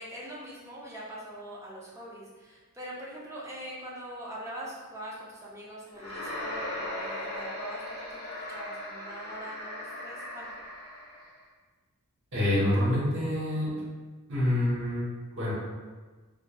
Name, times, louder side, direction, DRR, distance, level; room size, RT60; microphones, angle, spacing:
voice 1, 0.0-10.6, right 1 dB, 15° right, -6 dB, 0.4 m, -43 dB
sound 1, 5.9-11.3, left 1 dB, 30° left, 0.7 m, -38 dB
voice 2, 12.3-13.7 14.3-15.5, left 1 dB, 55° right, -8 dB, 0.9 m, -27 dB
2.9 x 2.1 x 2.2 m, 1.3 s
head